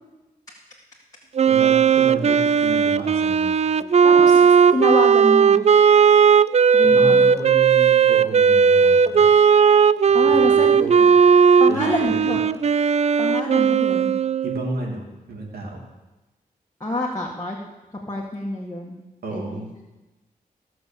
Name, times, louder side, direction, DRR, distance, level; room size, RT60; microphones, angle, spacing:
Wind instrument woodwind instrument, 1.3-14.8, right 6 dB, 45° right, 0.4 m, -16 dB
voice 1, 1.5-3.6 6.8-9.2 10.1-11.1 11.7-12.3 14.4-15.8 19.2-19.7, right 1 dB, 80° right, -1 dB, 2.9 m, -32 dB
voice 2, 4.0-5.6 6.7-7.2 10.1-10.9 11.6-12.4 13.2-14.1 16.8-17.6 18.1-19.0 19.3-19.6, left 1 dB, 20° left, -4 dB, 1.9 m, -26 dB
16.0 x 6.2 x 6.9 m, 1.1 s
cardioid pair, 55°, 16 cm